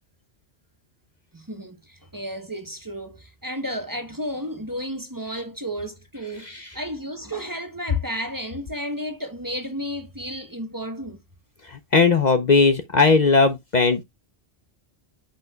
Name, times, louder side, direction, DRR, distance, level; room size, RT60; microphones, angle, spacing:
voice 1, 1.3-11.2, equal, 20° right, 1.2 m, -33 dB
voice 2, 11.7-14.0, left 4 dB, 45° left, 0.9 m, -18 dB
8.6 x 5.9 x 2.3 m
omnidirectional pair, 1.1 m